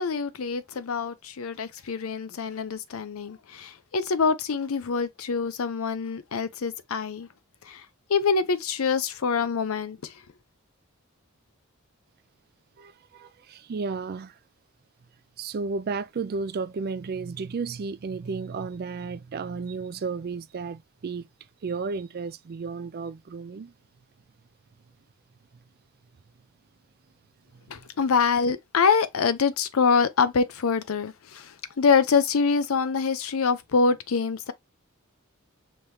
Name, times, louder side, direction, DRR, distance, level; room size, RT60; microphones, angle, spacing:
voice 1, 0.0-7.3 7.7-7.8 8.1-10.1 27.7-34.5, left 5 dB, 75° left, 0.6 m, -25 dB
voice 2, 12.8-14.3 15.4-21.2 21.6-23.7, right 4 dB, 45° right, 0.4 m, -33 dB
5.2 x 3.2 x 2.7 m
head